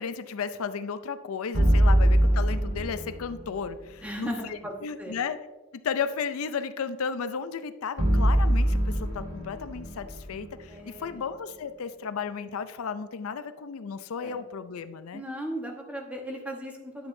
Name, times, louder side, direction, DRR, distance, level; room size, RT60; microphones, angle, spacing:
voice 1, 0.0-5.4 5.8-15.2, left 6 dB, 85° left, 11 dB, 0.5 m, -34 dB
sound 1, 1.5-3.7 8.0-11.2, right 1 dB, 85° right, 1.9 m, -24 dB
voice 2, 4.0-5.2 10.7-11.2 14.2-14.4 15.1-17.1, right 1 dB, 5° right, 0 dB, 1.0 m, -37 dB
10.0 x 7.1 x 2.6 m, 1.2 s
head